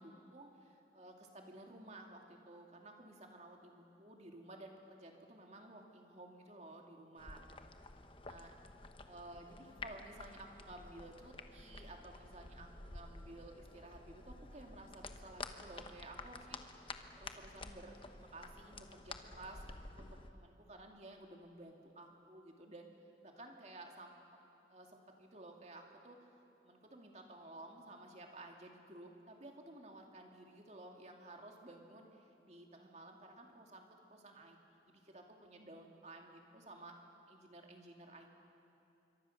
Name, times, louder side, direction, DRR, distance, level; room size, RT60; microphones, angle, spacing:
voice 1, 0.0-7.4 8.3-8.5 9.1-19.6 20.0-22.9 23.2-24.4 24.7-26.2 26.6-34.6 34.9-37.0 37.3-38.4, right 2 dB, 40° right, 2 dB, 2.5 m, -54 dB
sound 1, 7.2-20.3, left 3 dB, 30° left, 1.0 m, -51 dB
26.5 x 24.0 x 6.5 m, 2.8 s
head